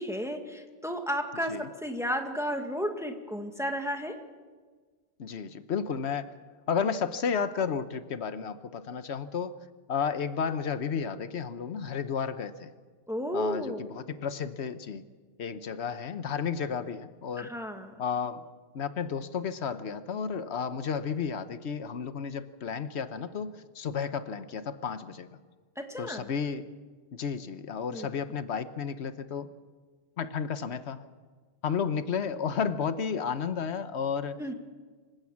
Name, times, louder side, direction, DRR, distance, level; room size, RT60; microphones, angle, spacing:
voice 1, 0.0-4.2 13.1-13.9 17.4-17.9 25.8-26.3 27.9-28.1 34.4-34.5, equal, 5° right, 4 dB, 1.7 m, -33 dB
voice 2, 5.2-6.3 6.7-9.5 9.9-12.7 13.3-15.0 15.4-17.5 18.0-18.4 18.7-25.3 26.0-26.7 27.1-29.5 30.2-31.0 31.6-34.4, left 6 dB, 85° left, 12 dB, 1.2 m, -32 dB
25.5 x 15.5 x 7.2 m, 1.4 s
omnidirectional pair, 1.1 m